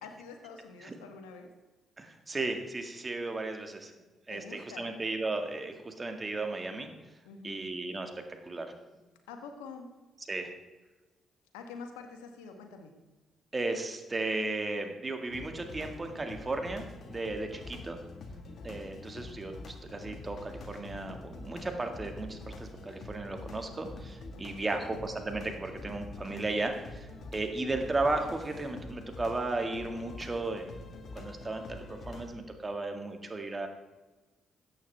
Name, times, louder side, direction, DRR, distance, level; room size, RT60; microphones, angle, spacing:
voice 1, 0.0-1.5 4.3-4.9 7.2-7.6 9.3-9.9 11.5-12.9 17.7-17.8 24.5-24.8, left 5 dB, 90° left, 5 dB, 1.3 m, -46 dB
voice 2, 2.0-3.9 4.3-6.9 7.4-8.1 8.4-8.7 10.3-10.5 13.5-18.0 18.6-30.7 31.2-33.7, right 2 dB, 30° right, 5 dB, 1.9 m, -35 dB
sound 1, 15.3-32.3, left 2 dB, 55° left, 1.7 m, -46 dB
13.5 x 8.7 x 3.5 m, 1.2 s
hypercardioid pair, 50°, 0 cm